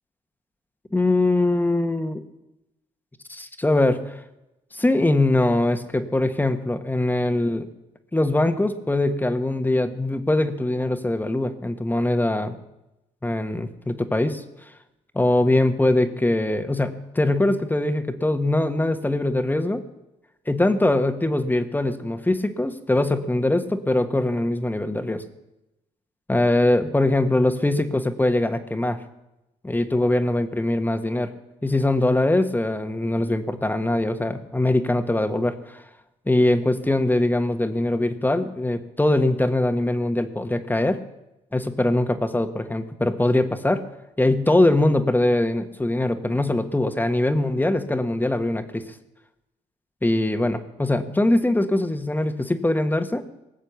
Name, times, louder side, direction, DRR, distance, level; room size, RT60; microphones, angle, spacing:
voice 1, 0.9-2.2 3.3-4.1 4.7-7.7 8.1-12.5 13.2-14.4 15.1-19.8 20.5-25.2 26.3-29.0 29.6-31.3 31.6-35.8 36.3-41.0 41.5-43.8 44.2-48.8 50.0-53.2, left 1 dB, 15° left, 8 dB, 1.5 m, -22 dB
19.0 x 7.4 x 7.2 m, 0.93 s
supercardioid pair, 65°, 14 cm